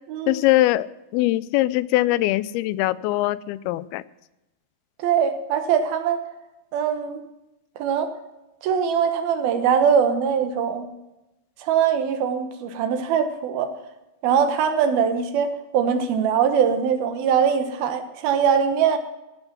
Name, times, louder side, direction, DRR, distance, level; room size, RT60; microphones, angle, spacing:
voice 1, 0.3-4.0, left 16 dB, 90° left, 18 dB, 2.5 m, -22 dB
voice 2, 5.0-6.2 6.7-7.2 7.8-8.1 8.6-10.9 11.6-13.7 14.2-19.0, right 7 dB, 80° right, 7 dB, 3.1 m, -22 dB
16.0 x 8.9 x 5.9 m, 0.97 s
omnidirectional pair, 4.3 m